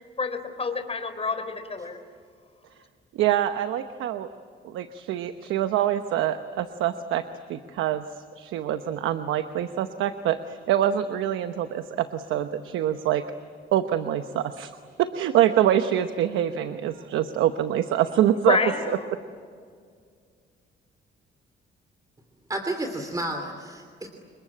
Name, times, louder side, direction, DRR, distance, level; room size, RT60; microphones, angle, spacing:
voice 1, 0.2-2.0 18.5-19.0, left 4 dB, 30° left, 8 dB, 3.7 m, -28 dB
voice 2, 3.1-4.3 4.6-7.2 7.5-8.0 8.4-13.2 13.7-14.7 15.0-18.6 18.9-19.0, right 11 dB, 90° right, 9 dB, 1.0 m, -25 dB
voice 3, 22.5-24.1, right 1 dB, 20° right, 5 dB, 2.9 m, -31 dB
28.0 x 22.5 x 8.8 m, 2.1 s
cardioid pair, 90°, 20 cm